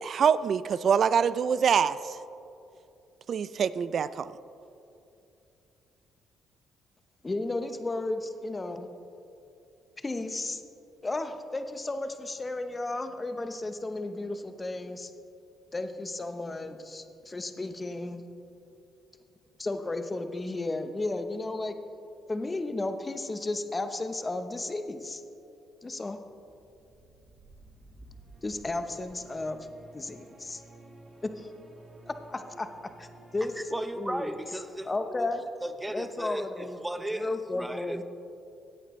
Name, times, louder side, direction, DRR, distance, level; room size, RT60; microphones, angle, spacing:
voice 1, 0.0-2.2 3.3-4.3, right 7 dB, 55° right, 16 dB, 0.4 m, -25 dB
voice 2, 7.2-8.9 10.0-10.6 11.0-15.1 15.7-18.2 19.6-21.8 22.3-25.2 25.8-26.2 28.4-29.7 29.9-30.6 31.2-31.5 32.0-33.1 33.3-33.7 34.0-34.3 34.8-35.4 35.9-38.0, left 2 dB, 25° left, 8 dB, 0.9 m, -34 dB
sound 1, 26.2-34.9, right 2 dB, 30° right, 2.0 m, -53 dB
voice 3, 33.7-35.3 35.6-38.0, right 1 dB, 10° right, 10 dB, 0.7 m, -36 dB
16.5 x 8.8 x 3.2 m, 2.7 s
supercardioid pair, 70°, 0 cm